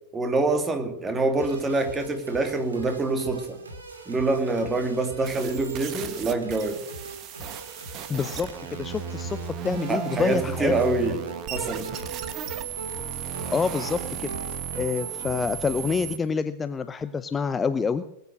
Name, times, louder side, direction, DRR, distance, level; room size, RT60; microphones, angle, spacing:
voice 1, 0.1-3.6 4.1-6.8 9.9-11.2 11.5-11.9, right 3 dB, 15° right, 6 dB, 2.4 m, -25 dB
sound 1, 1.4-15.5, right 3 dB, 75° right, 2.8 m, -41 dB
sound 2, 5.2-16.2, right 9 dB, 35° right, 1.5 m, -35 dB
voice 2, 8.1-11.2 13.5-14.3 14.8-18.0, left 5 dB, 15° left, 12 dB, 0.6 m, -27 dB
20.0 x 9.2 x 6.3 m, 0.81 s
figure-of-eight pair, 90°, 0 cm